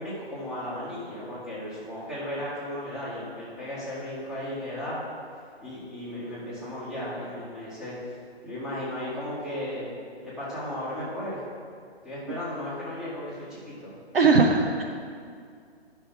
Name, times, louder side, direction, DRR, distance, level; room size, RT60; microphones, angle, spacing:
voice 1, 0.0-5.0 5.6-8.1 8.4-9.9 10.2-11.4 12.0-14.0, left 1 dB, ahead, -12 dB, 1.9 m, -35 dB
voice 2, 14.1-14.8, right 4 dB, 60° right, 3 dB, 0.8 m, -19 dB
9.9 x 5.6 x 4.6 m, 2.2 s
hypercardioid pair, 155°, 32 cm